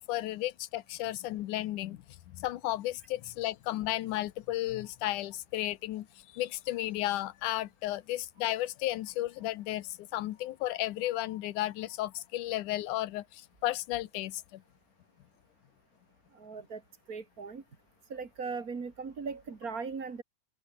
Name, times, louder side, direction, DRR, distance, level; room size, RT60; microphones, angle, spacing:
voice 1, 0.0-2.0 2.4-6.1 6.3-13.2 13.6-14.4, left 15 dB, 75° left, 2.4 m, -33 dB
voice 2, 16.3-16.8 17.1-17.6 18.1-20.2, right 5 dB, 30° right, 2.2 m, -38 dB
open air
omnidirectional pair, 3.8 m